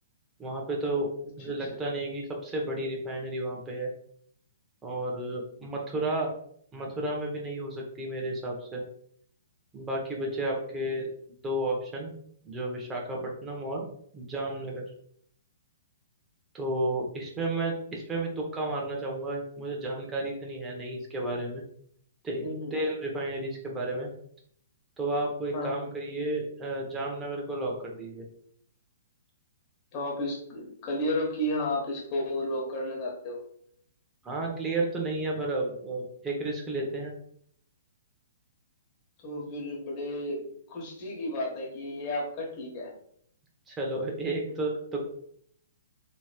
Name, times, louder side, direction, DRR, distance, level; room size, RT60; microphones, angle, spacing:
voice 1, 0.4-1.1 1.4-3.9 4.8-6.3 6.7-8.8 9.7-12.1 12.4-13.9 14.1-14.8 16.5-21.6 22.2-24.1 25.0-28.2 34.2-37.1 43.7-45.0, right 2 dB, 15° right, -1 dB, 0.9 m, -32 dB
voice 2, 22.4-22.8 25.5-25.9 29.9-33.4 39.2-42.9, left 1 dB, 35° left, -2 dB, 1.1 m, -33 dB
3.1 x 2.8 x 2.3 m, 0.65 s
figure-of-eight pair, 120°, 0 cm